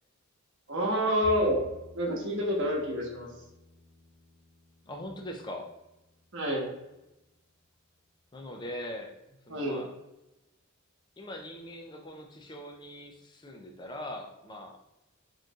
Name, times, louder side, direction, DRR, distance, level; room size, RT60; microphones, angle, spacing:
voice 1, 0.7-1.6 1.9-3.3 6.3-6.7 9.5-9.8, equal, 60° right, -2 dB, 1.1 m, -28 dB
Bowed string instrument, 1.2-7.5, left 1 dB, 10° right, 0.9 m, -51 dB
voice 2, 4.9-5.7 8.3-9.1 9.5-9.9 11.2-14.8, left 1 dB, 20° left, 3 dB, 0.4 m, -41 dB
4.5 x 3.1 x 2.3 m, 0.96 s
head